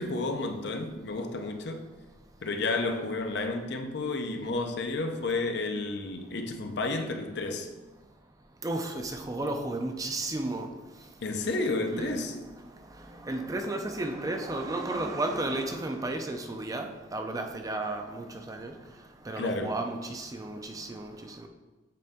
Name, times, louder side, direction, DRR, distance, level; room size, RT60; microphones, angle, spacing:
voice 1, 0.0-1.8 2.4-7.7 11.2-12.3 19.4-19.8, left 3 dB, 60° left, 5 dB, 0.6 m, -31 dB
voice 2, 8.6-10.7 11.9-12.1 13.3-18.7 19.3-21.1, right 2 dB, 20° right, 4 dB, 0.4 m, -33 dB
7.7 x 3.9 x 3.5 m, 1.2 s
head